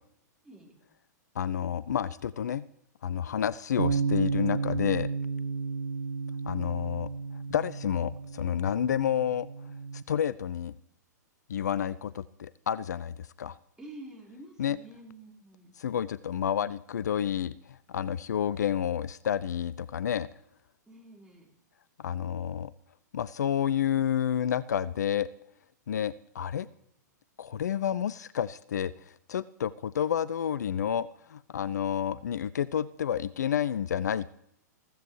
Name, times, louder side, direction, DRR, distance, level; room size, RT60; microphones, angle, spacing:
voice 1, 1.4-2.6 3.0-5.1 6.4-7.1 7.5-9.5 10.1-10.7 11.5-13.6 14.6-14.8 15.8-20.3 22.0-22.7 23.1-25.3 25.9-26.7 27.4-34.3, left 9 dB, 65° left, 19 dB, 0.4 m, -30 dB
Bass guitar, 3.8-10.0, right 5 dB, 80° right, 0.6 m, -32 dB
voice 2, 13.8-15.7 20.9-21.5, right 1 dB, 5° right, -3 dB, 4.2 m, -48 dB
21.0 x 15.0 x 3.1 m, 0.75 s
figure-of-eight pair, 105°, 10 cm